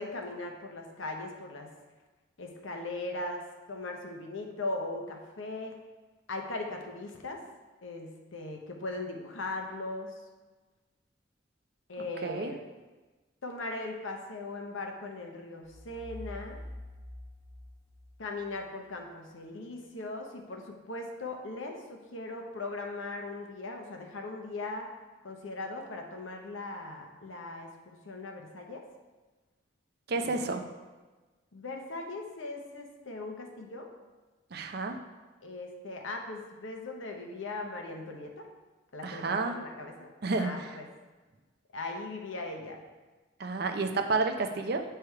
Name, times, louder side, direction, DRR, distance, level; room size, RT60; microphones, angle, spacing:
voice 1, 0.0-1.7 2.4-5.8 6.3-7.4 7.8-10.1 11.9-12.6 13.4-16.6 18.2-24.9 25.2-28.8 30.1-30.4 31.5-33.9 35.4-38.5 38.9-40.1 40.4-40.9 41.7-42.8, left 2 dB, 80° left, 2 dB, 0.9 m, -39 dB
voice 2, 12.2-12.5 30.1-30.6 34.5-35.0 39.0-39.6 40.2-40.7 43.4-44.8, right 3 dB, 50° right, 5 dB, 0.5 m, -30 dB
sound 1, 15.6-18.5, left 1 dB, 25° left, 1.6 m, -46 dB
8.1 x 3.4 x 4.6 m, 1.3 s
head